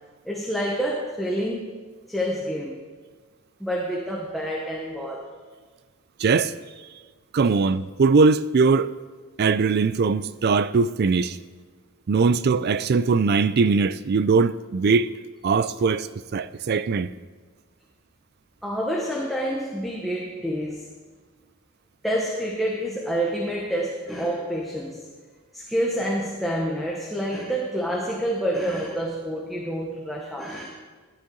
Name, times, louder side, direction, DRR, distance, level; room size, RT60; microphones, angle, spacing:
voice 1, 0.2-1.6 2.1-2.8 3.6-5.3 18.6-20.9 22.0-25.0 25.5-30.7, equal, ahead, 1.1 m, -28 dB
voice 2, 6.2-6.5 7.3-8.9 9.4-11.4 12.1-15.1 15.4-17.1, right 4 dB, 50° right, 0.4 m, -21 dB
12.5 x 10.0 x 3.9 m
head